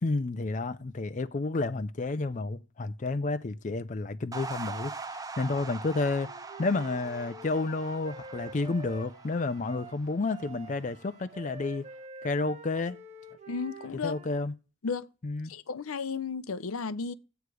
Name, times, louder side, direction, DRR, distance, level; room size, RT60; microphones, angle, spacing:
voice 1, 0.0-6.3 6.6-11.9 12.2-13.0 14.0-14.5 15.2-15.5, left 3 dB, 35° left, 0.5 m, -31 dB
sound 1, 4.3-10.8, right 4 dB, 15° right, 0.6 m, -42 dB
Wind instrument woodwind instrument, 5.9-14.4, right 3 dB, 35° right, 1.0 m, -47 dB
voice 2, 13.5-14.2 14.8-15.1 15.4-17.1, left 5 dB, 80° left, 0.7 m, -34 dB
15.0 x 8.1 x 4.8 m
head